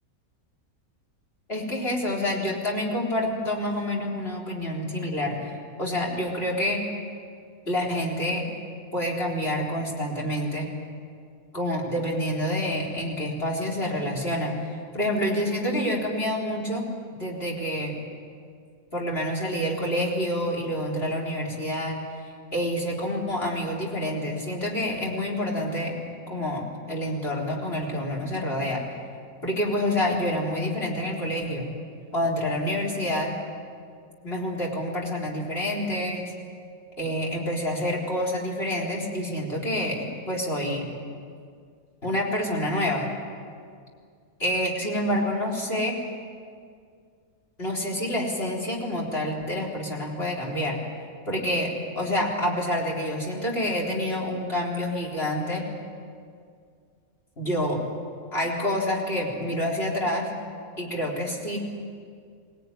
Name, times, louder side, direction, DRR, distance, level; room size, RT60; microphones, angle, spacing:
voice 1, 1.5-5.5 5.8-6.8 7.7-8.4 8.9-10.7 11.5-14.5 14.9-16.8 17.2-17.9 18.9-22.0 22.5-26.0 26.3-28.8 29.4-31.6 32.1-33.3 34.2-36.3 37.0-40.9 42.0-43.1 44.4-46.0 47.6-50.8 51.3-55.7 57.4-57.8 58.3-60.3 60.8-61.6, left 1 dB, 45° left, -3 dB, 4.2 m, -27 dB
24.5 x 18.5 x 9.8 m, 2.2 s
omnidirectional pair, 1.5 m